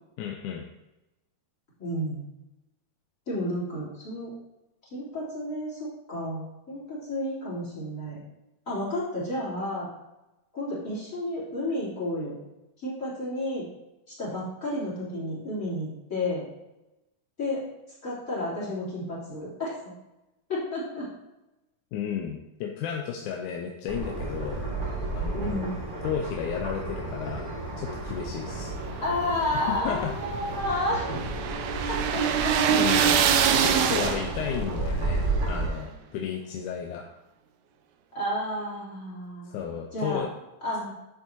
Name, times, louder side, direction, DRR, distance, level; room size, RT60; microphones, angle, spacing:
voice 1, 0.2-0.7 21.9-24.6 25.1-25.7 26.0-29.0 29.5-30.1 32.7-33.2 33.5-37.0 39.4-40.3, left 8 dB, 80° left, 2 dB, 2.1 m, -33 dB
voice 2, 1.8-2.3 3.3-4.3 4.9-8.2 8.7-9.9 10.5-12.4 12.8-13.7 14.1-16.5 17.4-17.6 18.0-19.7 20.5-21.1 25.3-25.8 29.0-31.2 31.9-32.8 38.1-39.6 39.9-40.3 40.6-40.9, left 1 dB, 25° left, -6 dB, 3.6 m, -31 dB
sound 1, 23.9-35.7, right 2 dB, 25° right, 1.3 m, -33 dB
sound 2, 29.1-34.6, right 8 dB, 80° right, 1.9 m, -25 dB
10.0 x 7.2 x 2.9 m, 0.97 s
omnidirectional pair, 3.6 m